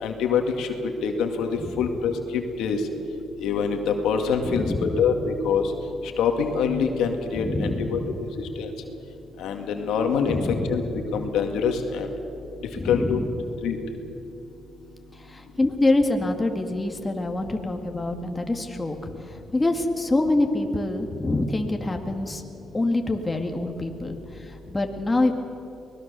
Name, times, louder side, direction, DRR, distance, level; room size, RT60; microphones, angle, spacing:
voice 1, 0.0-0.7 1.0-2.8 3.4-5.6 6.2-8.0 8.6-8.7 9.4-10.8 11.1-12.1 12.9-13.2 13.6-13.8, left 6 dB, 85° left, 4 dB, 2.1 m, -25 dB
voice 2, 4.4-5.1 7.3-8.1 10.3-10.9 12.7-13.3 15.1-22.4 22.7-25.3, left 2 dB, 20° left, 4 dB, 2.2 m, -26 dB
24.0 x 19.5 x 6.9 m, 2.8 s
cardioid pair, 90°, 0 cm